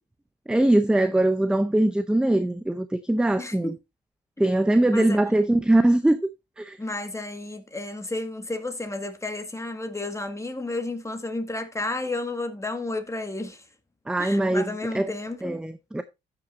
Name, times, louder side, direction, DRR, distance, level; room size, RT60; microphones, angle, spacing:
voice 1, 0.5-3.7 4.4-6.3 6.6-6.8 14.1-14.7 14.9-15.1 15.4-16.0, right 1 dB, 5° right, 0.5 m, -21 dB
voice 2, 3.4-3.8 4.9-5.2 6.8-13.6 14.2-15.6, left 2 dB, 15° left, 1.6 m, -32 dB
15.0 x 6.0 x 2.5 m
cardioid pair, 90°, 20 cm